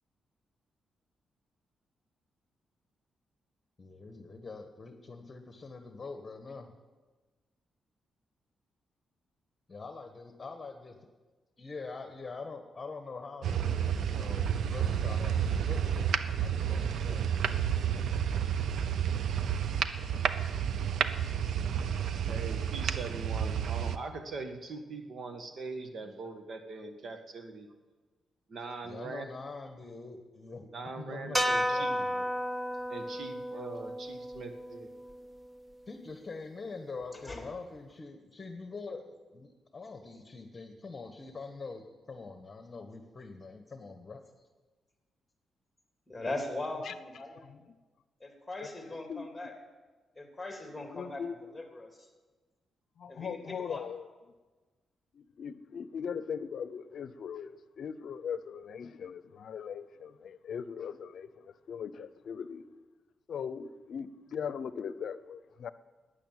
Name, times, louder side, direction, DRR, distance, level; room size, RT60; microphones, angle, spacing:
voice 1, 3.8-6.7 9.7-10.9 11.6-16.1 16.4-17.2 28.8-30.7 31.0-31.4 31.7-32.2 35.9-44.2, left 4 dB, 30° left, 1.4 m, -44 dB
sound 1, 13.4-24.0, right 8 dB, 75° right, 0.7 m, -30 dB
voice 2, 22.3-27.7 28.5-29.3 30.7-32.0 32.9-34.9, right 3 dB, 60° right, 1.8 m, -41 dB
sound 2, 31.3-35.7, equal, 10° right, 0.9 m, -33 dB
voice 3, 46.1-47.4 48.2-49.5 50.2-51.2 51.5-51.9 53.1-53.8, left 2 dB, 10° left, 3.3 m, -39 dB
voice 4, 47.4-47.8 48.6-49.5 50.9-51.5 53.0-54.1 55.1-62.6 63.3-65.7, left 7 dB, 65° left, 0.7 m, -40 dB
12.0 x 9.8 x 9.1 m
cardioid pair, 90°, 0 cm